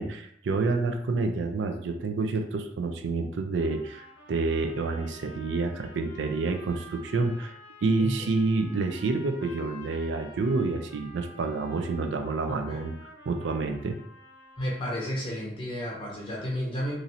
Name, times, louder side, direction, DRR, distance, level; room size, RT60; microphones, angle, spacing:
voice 1, 0.0-7.5 7.8-14.0, right 3 dB, 75° right, 5 dB, 0.4 m, -28 dB
sound 1, 3.6-15.3, left 1 dB, 65° left, 0.8 m, -50 dB
voice 2, 12.5-12.8 14.6-16.9, equal, 25° left, -4 dB, 0.6 m, -32 dB
3.0 x 2.5 x 2.7 m, 0.69 s
head